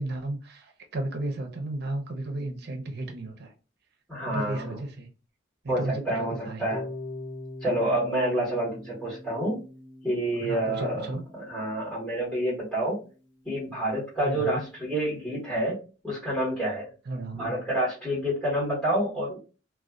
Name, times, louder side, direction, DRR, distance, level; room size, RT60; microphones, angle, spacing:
voice 1, 0.0-3.5 4.3-5.1 5.6-6.7 10.4-11.2 14.2-14.6 17.1-17.6, right 2 dB, 60° right, 0.6 m, -34 dB
voice 2, 4.1-4.8 5.7-6.8 7.6-9.6 10.0-13.0 13.4-15.8 16.0-16.9 17.4-19.4, right 1 dB, 5° left, 1.2 m, -28 dB
Harp, 6.7-12.8, left 2 dB, 85° left, 1.0 m, -43 dB
2.5 x 2.3 x 2.3 m
head